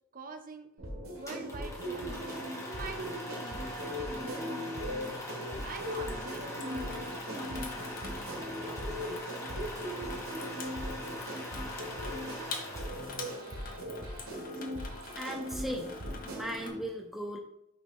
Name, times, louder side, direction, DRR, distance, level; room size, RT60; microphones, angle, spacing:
voice 1, 0.1-0.7 1.2-2.2 2.6-5.2 5.6-7.9, right 3 dB, 40° right, 7 dB, 0.7 m, -45 dB
sound 1, 0.8-16.8, equal, 75° right, 1.7 m, -39 dB
sound 2, 1.3-13.6, equal, 15° left, 1.4 m, -42 dB
Water tap faucet / Sink (filling or washing), 5.5-16.7, left 4 dB, 40° left, 1.0 m, -46 dB
voice 2, 15.2-16.0 16.2-17.4, right 1 dB, ahead, 2 dB, 0.5 m, -38 dB
6.2 x 3.6 x 5.4 m, 0.81 s
head